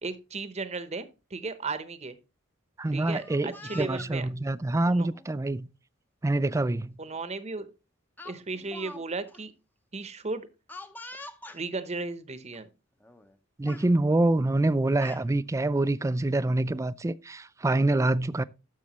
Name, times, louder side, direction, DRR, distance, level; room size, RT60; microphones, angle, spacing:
voice 1, 0.0-1.0 1.3-2.2 2.9-4.3 4.9-5.1 7.0-7.7 8.2-9.5 9.9-10.5 11.5-12.7, right 3 dB, 35° right, 0.9 m, -35 dB
voice 2, 2.8-5.7 6.2-6.9 13.6-18.4, right 2 dB, 15° right, 0.3 m, -26 dB
Speech, 2.9-4.1 5.0-5.3 6.5-6.6 7.0-7.2 8.2-9.0 9.3-9.4 10.7-11.6 12.5-12.6 13.0-13.3 13.6-13.9 14.7-15.2, left 2 dB, 10° left, 0.7 m, -45 dB
12.5 x 6.4 x 3.0 m
head